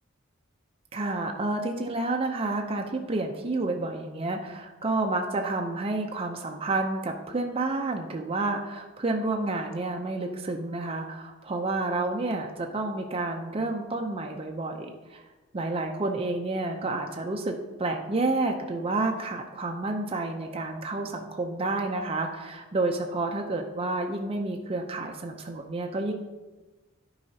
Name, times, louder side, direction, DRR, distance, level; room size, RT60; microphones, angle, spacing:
voice 1, 0.9-15.2 15.5-26.1, right 2 dB, 30° right, 2 dB, 0.5 m, -30 dB
11.5 x 4.8 x 2.7 m, 1.2 s
head